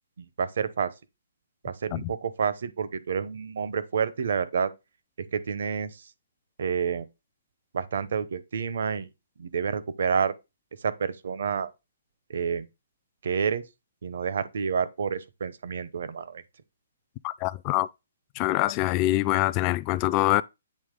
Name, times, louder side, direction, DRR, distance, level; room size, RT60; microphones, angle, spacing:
voice 1, 0.2-0.9 1.6-4.7 5.3-6.1 6.6-7.1 7.7-9.1 9.4-10.3 10.8-11.7 12.3-12.7 13.2-13.6 14.0-16.4, right 6 dB, 65° right, 0.8 m, -29 dB
voice 2, 17.2-17.9 18.4-20.4, left 16 dB, 30° left, 0.3 m, -24 dB
8.5 x 3.0 x 3.7 m
hypercardioid pair, 140°, 0 cm